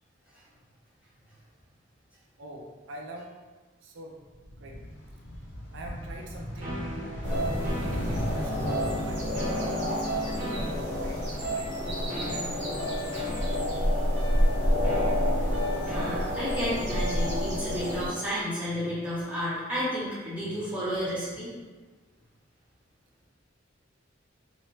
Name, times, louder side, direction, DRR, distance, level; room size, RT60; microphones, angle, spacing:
voice 1, 2.4-3.3 3.8-4.2 4.6-4.8 5.7-6.9 7.2-9.2 9.9-11.7 12.1-12.8 13.0-13.3, right 1 dB, 80° right, 0 dB, 0.4 m, -44 dB
sound 1, 4.3-12.4 12.8-13.9, equal, 70° left, 0.8 m, -37 dB
sound 2, 6.6-17.6, right 1 dB, 35° right, 1.2 m, -37 dB
sound 3, 7.2-18.1, left 1 dB, 65° right, 0.9 m, -29 dB
voice 2, 13.4-13.8 15.8-21.5, equal, 10° right, -12 dB, 1.3 m, -32 dB
3.1 x 3.0 x 2.7 m, 1.3 s
head